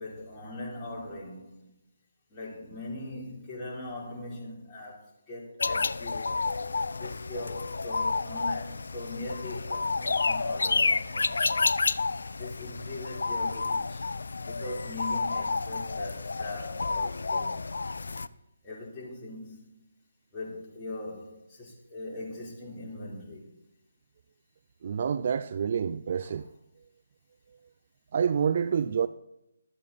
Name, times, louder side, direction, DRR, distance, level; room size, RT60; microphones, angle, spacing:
voice 1, 0.0-1.8 2.3-6.4 6.9-11.4 12.4-14.0 14.5-17.6 18.6-19.9 20.3-23.5 26.2-26.4, left 2 dB, 15° left, 3.7 m, -40 dB
sound 1, 5.6-18.3, left 4 dB, 60° left, 0.5 m, -30 dB
voice 2, 24.8-26.5 28.1-29.1, right 7 dB, 40° right, 0.4 m, -27 dB
15.5 x 12.5 x 4.1 m
figure-of-eight pair, 145°, 0 cm